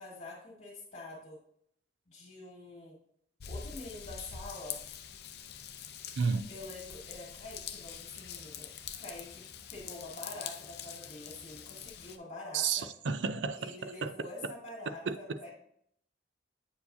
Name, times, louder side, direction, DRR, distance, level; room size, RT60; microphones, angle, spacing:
voice 1, 0.0-1.4 2.1-3.0 3.5-4.8 6.5-8.7 9.0-9.4 9.7-12.9 13.6-15.5, left 2 dB, 45° left, 2.0 m, -46 dB
Raindrop / Vehicle horn car horn honking / Trickle dribble, 3.4-12.2, left 8 dB, 60° left, 0.5 m, -44 dB
voice 2, 6.2-6.5 12.5-13.7 14.0-14.1 15.1-15.2, right 5 dB, 75° right, 0.5 m, -31 dB
8.2 x 4.6 x 2.6 m
head